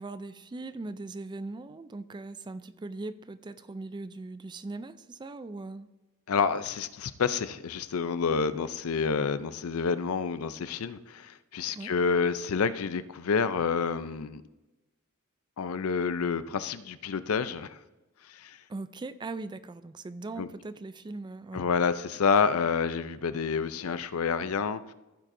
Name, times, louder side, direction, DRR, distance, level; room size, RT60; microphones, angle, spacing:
voice 1, 0.0-5.9 11.7-11.9 18.7-21.6, right 3 dB, 20° right, 12 dB, 0.4 m, -40 dB
voice 2, 6.3-14.4 15.6-17.8 18.3-18.6 20.4-20.5 21.5-24.9, left 5 dB, 80° left, 14 dB, 0.5 m, -28 dB
15.0 x 7.4 x 2.6 m, 1.1 s
head